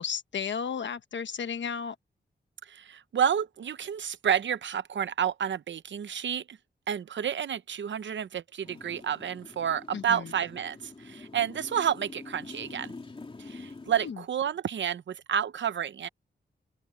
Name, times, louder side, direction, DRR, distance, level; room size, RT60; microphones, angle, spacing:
voice 1, 0.0-1.9 9.9-10.3 14.0-14.2, left 7 dB, 75° left, 1.2 m, -33 dB
voice 2, 2.6-6.6 6.9-12.9 13.4-16.1, right 8 dB, 80° right, 0.8 m, -30 dB
Motorcycle, 8.6-14.1, left 3 dB, 30° left, 3.0 m, -46 dB
open air
wide cardioid pair, 160°, 19 cm